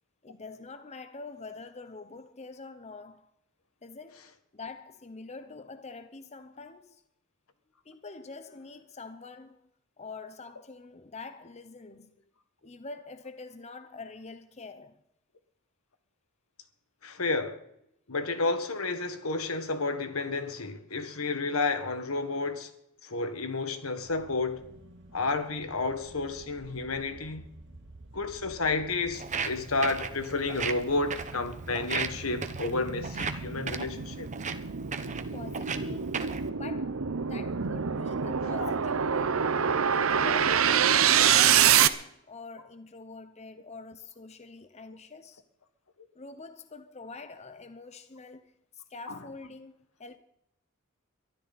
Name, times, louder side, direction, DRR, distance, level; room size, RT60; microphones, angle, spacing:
voice 1, 0.2-3.3 3.8-7.0 7.8-9.6 10.0-12.1 12.6-15.0 35.3-36.2 36.5-39.5 39.9-45.4 46.1-50.2, left 3 dB, 30° left, 0.8 m, -45 dB
voice 2, 17.0-17.6 18.1-22.7 23.0-24.6 25.1-27.5 28.1-34.3 38.6-38.7 49.1-49.2, left 3 dB, 80° left, 1.7 m, -31 dB
sound 1, 24.0-33.8, equal, 55° right, 2.3 m, -55 dB
sound 2, 27.2-27.3 27.8-41.9, right 8 dB, 70° right, 0.8 m, -27 dB
Walk footsteps, 29.1-36.5, right 5 dB, 35° right, 1.0 m, -37 dB
23.0 x 13.0 x 4.2 m
head